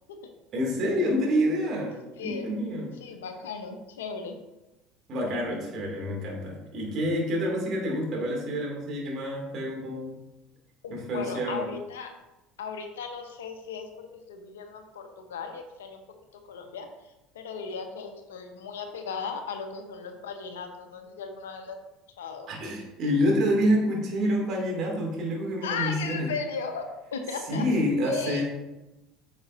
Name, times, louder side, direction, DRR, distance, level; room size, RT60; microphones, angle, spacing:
voice 1, 0.5-3.0 5.1-10.2 10.9-11.7 22.5-26.3 27.5-28.4, equal, 45° right, -1 dB, 2.6 m, -27 dB
voice 2, 2.2-2.5 3.0-4.4 10.8-12.1 12.6-16.0 16.5-16.9 17.3-21.8 22.2-22.5 25.6-27.6 28.0-28.4, left 5 dB, 75° left, 5 dB, 0.9 m, -36 dB
8.8 x 6.1 x 2.7 m, 1.0 s
hypercardioid pair, 70°, 0 cm